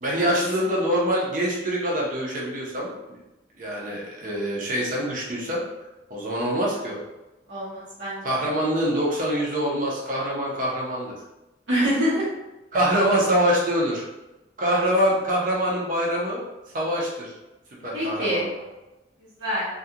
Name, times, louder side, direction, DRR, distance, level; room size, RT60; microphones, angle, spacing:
voice 1, 0.0-3.2 3.6-5.6 6.1-7.0 8.2-11.1 12.7-14.0 14.6-16.4 16.7-17.3 17.8-18.5, equal, 45° right, -4 dB, 0.7 m, -24 dB
voice 2, 7.5-8.2 11.7-12.3 17.9-18.4 19.4-19.7, equal, 85° right, -8 dB, 1.0 m, -25 dB
2.4 x 2.3 x 2.7 m, 0.99 s
head